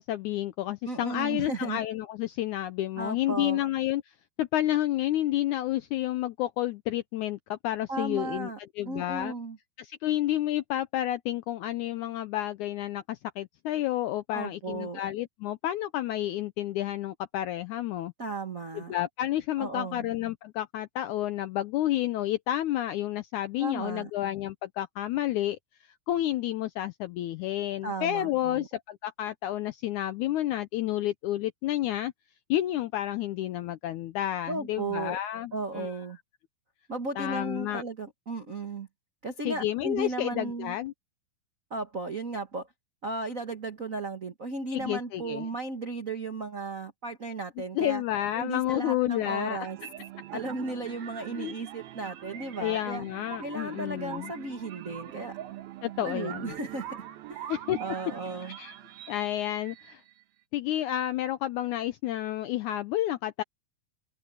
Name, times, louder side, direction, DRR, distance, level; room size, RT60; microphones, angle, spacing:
voice 1, 0.0-4.0 4.4-8.5 8.8-9.3 9.8-18.1 18.7-25.6 26.1-32.1 32.5-35.9 37.2-37.8 39.5-40.9 44.7-45.5 47.8-49.6 51.4-51.5 52.6-54.3 55.8-56.5 57.5-57.8 58.6-58.7 59.1-60.0 60.5-63.4, left 13 dB, 80° left, 1.8 m, -30 dB
voice 2, 0.8-1.8 3.0-3.6 7.9-8.6 8.8-9.6 14.3-15.0 18.2-18.9 19.6-20.1 23.6-24.1 27.8-28.7 34.5-35.2 35.5-36.2 36.9-38.9 39.2-40.8 41.7-42.7 43.0-48.0 48.3-49.8 50.3-53.0 53.4-55.4 56.0-57.5 57.8-58.6, right 3 dB, 60° right, 0.8 m, -35 dB
sound 1, 49.6-60.2, right 12 dB, 85° right, 3.3 m, -43 dB
omnidirectional pair, 4.1 m